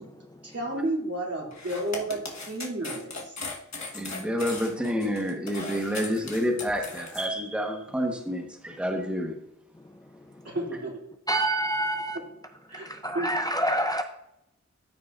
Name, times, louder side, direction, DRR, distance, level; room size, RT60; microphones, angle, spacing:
voice 1, 0.4-3.4 10.4-11.0 12.1-12.2 12.7-12.9 13.1-13.4, right 1 dB, 55° right, -3 dB, 2.7 m, -32 dB
sound 1, 1.5-7.3, left 3 dB, 65° left, 1.2 m, -38 dB
voice 2, 3.9-9.3, equal, 5° right, 2 dB, 1.1 m, -29 dB
voice 3, 11.3-12.2 12.7-14.0, right 1 dB, 15° left, 5 dB, 0.5 m, -27 dB
13.5 x 5.1 x 2.4 m, 0.82 s
wide cardioid pair, 80°, 30 cm